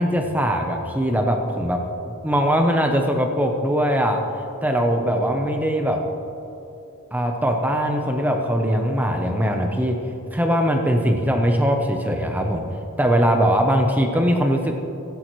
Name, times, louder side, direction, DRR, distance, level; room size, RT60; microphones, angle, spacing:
voice 1, 0.0-1.8 2.2-4.2 4.6-6.0 7.1-10.0 10.3-12.6 13.0-14.7, equal, 5° right, 3 dB, 0.7 m, -21 dB
15.5 x 10.5 x 3.1 m, 2.9 s
head